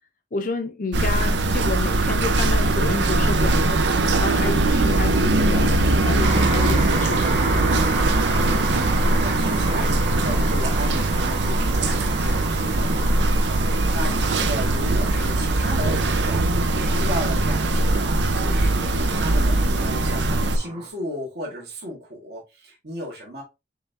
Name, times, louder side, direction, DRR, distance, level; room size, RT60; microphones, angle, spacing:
voice 1, 0.3-3.8 4.2-7.5, left 3 dB, 45° left, 0.6 m, -30 dB
sound 1, 0.9-20.6, right 2 dB, 80° right, 0.7 m, -21 dB
sound 2, 6.2-20.9, right 2 dB, 40° right, 1.5 m, -32 dB
voice 2, 9.0-23.4, equal, 60° right, 1.7 m, -35 dB
5.5 x 3.3 x 2.7 m
head